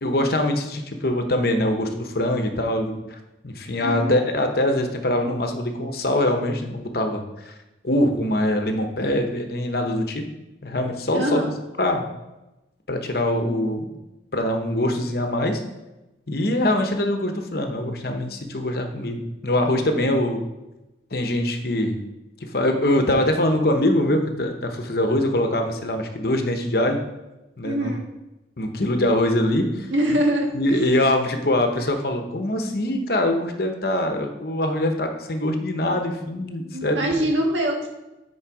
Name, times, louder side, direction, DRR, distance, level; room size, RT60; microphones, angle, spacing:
voice 1, 0.0-3.2 3.4-7.5 7.8-10.2 10.6-11.5 11.8-12.1 12.9-13.9 14.3-15.6 16.3-20.5 21.1-22.0 22.4-27.0 27.6-28.0 28.6-29.9 30.5-37.2, left 1 dB, 55° left, 5 dB, 1.0 m, -23 dB
voice 2, 3.8-4.2 11.1-11.5 20.0-20.1 27.6-28.1 29.9-30.9 36.7-37.9, right 1 dB, 85° right, 0 dB, 1.6 m, -24 dB
8.8 x 4.7 x 4.8 m, 1.0 s
head